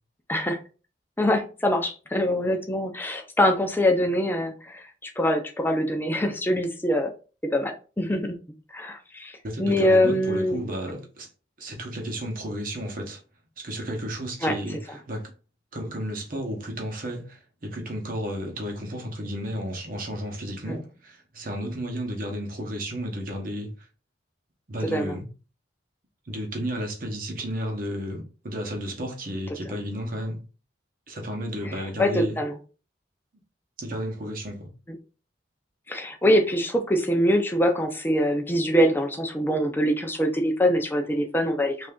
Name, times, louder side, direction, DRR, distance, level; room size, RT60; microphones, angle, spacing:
voice 1, 1.2-7.1 7.5-8.4 8.7-10.6 14.4-14.8 20.7-20.8 24.9-25.2 31.6-32.5 35.9-41.9, equal, 10° left, 0.5 m, -24 dB
voice 2, 9.4-11.3 11.6-13.2 13.6-15.3 15.7-23.9 24.7-25.2 26.3-30.4 31.1-32.4 33.8-34.7, equal, 50° right, 0.9 m, -33 dB
3.3 x 2.6 x 3.6 m
head